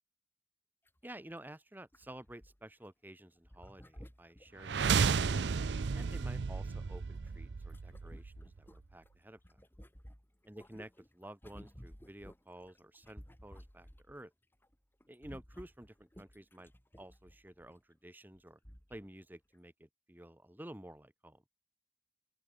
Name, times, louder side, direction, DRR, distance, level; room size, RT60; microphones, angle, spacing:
sound 1, 0.9-1.0 1.3-1.4 1.9-2.9 3.4-5.2 5.7-9.1 9.4-14.2 14.5-14.8 15.0-17.7 18.3-18.4 18.6-19.1 19.5-19.6, equal, 10° left, 4.4 m, -55 dB
voice 1, 1.0-5.2 5.9-9.6 10.5-14.3 15.1-16.7 17.0-18.6 18.9-21.4, right 1 dB, 10° right, 1.3 m, -52 dB
sound 2, 4.6-8.6, right 5 dB, 75° right, 0.5 m, -33 dB
open air
head